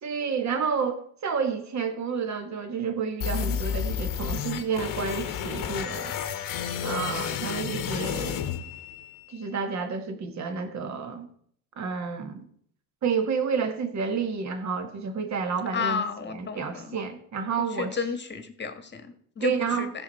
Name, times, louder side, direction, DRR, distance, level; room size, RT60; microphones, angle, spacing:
voice 1, 0.0-6.1 6.8-8.5 9.3-11.3 11.8-12.4 13.0-18.0 19.4-19.9, right 5 dB, 35° right, 7 dB, 1.7 m, -30 dB
sound 1, 3.2-9.2, left 8 dB, 45° left, 1.2 m, -31 dB
voice 2, 15.7-17.0 17.8-19.9, left 5 dB, 25° left, 8 dB, 1.5 m, -32 dB
15.0 x 6.5 x 4.2 m, 0.63 s
supercardioid pair, 95°, 46 cm